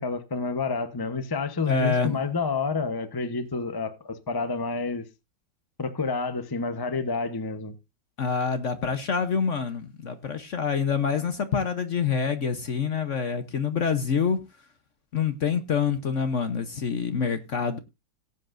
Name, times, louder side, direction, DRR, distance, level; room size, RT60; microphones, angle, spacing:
voice 1, 0.0-5.1 5.8-7.7, left 4 dB, 20° left, 0.6 m, -29 dB
voice 2, 1.7-2.2 8.2-14.4 15.1-17.8, left 6 dB, 50° left, 1.0 m, -26 dB
17.5 x 8.4 x 2.6 m
omnidirectional pair, 2.1 m